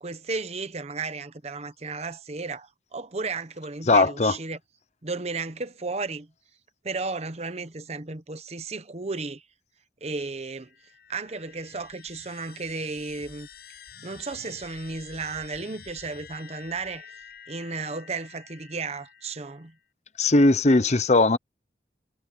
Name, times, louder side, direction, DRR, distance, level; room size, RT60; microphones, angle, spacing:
voice 1, 0.0-4.6 5.0-6.3 6.8-9.4 10.0-10.7 11.1-13.5 14.0-17.1 17.5-19.7, right 3 dB, 35° right, 1.0 m, -34 dB
voice 2, 3.9-4.3 20.2-21.4, left 2 dB, 40° left, 0.9 m, -19 dB
sound 1, 10.5-19.8, left 7 dB, 60° left, 7.4 m, -49 dB
head